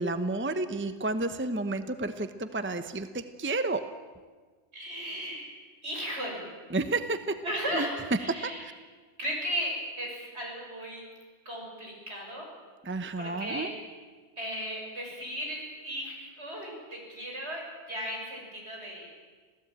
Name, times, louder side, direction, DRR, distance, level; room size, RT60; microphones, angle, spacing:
voice 1, 0.0-3.8 6.7-7.4 7.7-7.9 8.3-8.7 12.8-13.7, right 2 dB, 10° right, 10 dB, 0.8 m, -31 dB
voice 2, 4.7-5.5 5.8-6.5 7.4-8.6 9.2-11.1 11.5-12.5 13.2-13.7 14.4-19.1, equal, 70° right, -1 dB, 7.0 m, -36 dB
26.5 x 17.0 x 9.0 m, 1.5 s
omnidirectional pair, 1.2 m